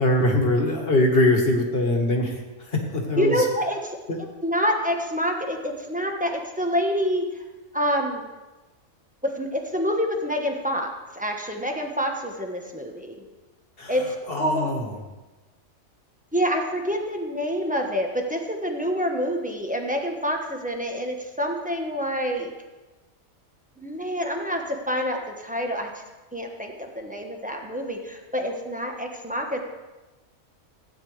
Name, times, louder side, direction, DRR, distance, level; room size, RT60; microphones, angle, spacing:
voice 1, 0.0-3.5 4.1-4.2 13.8-13.9 14.3-14.9, left 1 dB, 45° left, 1 dB, 1.7 m, -22 dB
voice 2, 3.2-4.0 4.4-7.4 7.7-8.3 9.2-10.9 11.1-13.2 13.9-14.7 16.3-22.5 23.8-26.0 26.3-29.6, equal, 5° right, 1 dB, 1.0 m, -27 dB
16.0 x 9.4 x 3.3 m, 1.1 s
omnidirectional pair, 1.5 m